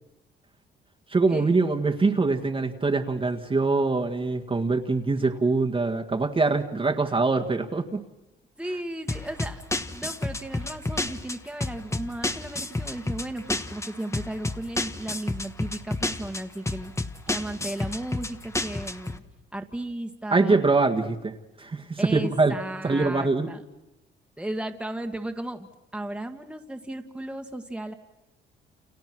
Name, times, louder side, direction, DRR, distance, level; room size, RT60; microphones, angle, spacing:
voice 1, 1.1-8.0 20.3-22.5 22.8-23.5, right 3 dB, 25° right, 3 dB, 1.8 m, -24 dB
voice 2, 8.6-9.6 9.9-16.9 17.3-19.2 19.5-20.6 22.0-23.6 24.4-27.9, right 1 dB, 5° right, 4 dB, 1.9 m, -35 dB
sound 1, 9.1-19.2, left 2 dB, 15° left, 1.4 m, -31 dB
29.5 x 28.0 x 6.2 m, 0.92 s
cardioid pair, 90°, 20 cm